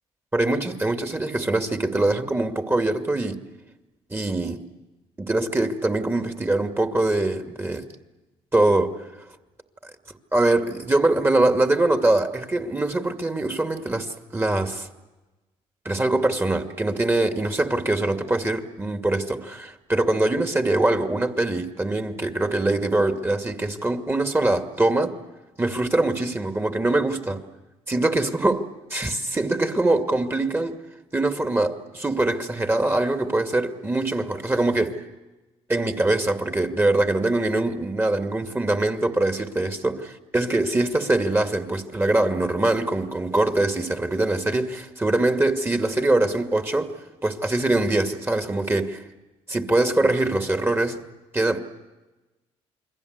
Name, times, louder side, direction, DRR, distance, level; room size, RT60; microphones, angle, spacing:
voice 1, 0.3-3.4 4.1-4.6 5.2-7.9 8.5-9.1 10.3-14.9 15.8-25.2 25.6-27.4 27.9-28.6 28.9-30.8 31.1-35.0 35.7-46.9 47.2-49.0 49.5-51.0 51.3-51.6, right 2 dB, 20° right, 2.5 m, -23 dB
29.0 x 22.0 x 8.3 m
supercardioid pair, 60°, 13 cm